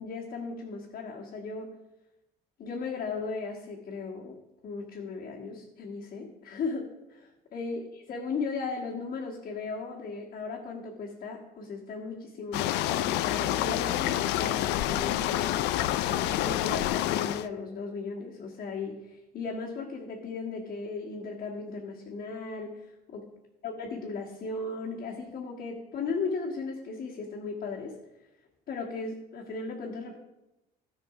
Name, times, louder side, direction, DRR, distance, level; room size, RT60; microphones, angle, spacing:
voice 1, 0.0-1.8 2.6-4.4 4.6-15.6 16.0-23.3 23.6-28.0 28.7-30.2, left 4 dB, 60° left, -4 dB, 1.9 m, -36 dB
sound 1, 12.5-17.5, left 14 dB, 90° left, 0.4 m, -28 dB
14.5 x 5.8 x 5.0 m, 0.95 s
cardioid pair, 110°, 17 cm